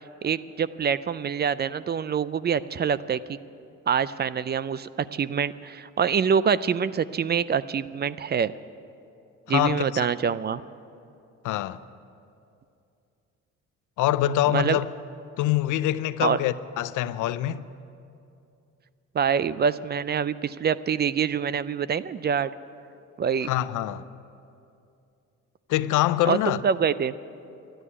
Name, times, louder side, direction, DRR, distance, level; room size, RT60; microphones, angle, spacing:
voice 1, 0.2-3.4 3.9-8.5 9.5-10.6 14.5-14.8 16.2-16.4 19.1-22.5 23.2-23.5 26.3-27.1, right 7 dB, 35° right, 0.4 m, -25 dB
voice 2, 9.5-9.8 11.4-11.8 14.0-14.9 15.4-17.6 23.5-24.1 25.7-26.6, left 14 dB, 85° left, 0.6 m, -24 dB
12.5 x 10.5 x 9.7 m
cardioid pair, 90°, 30 cm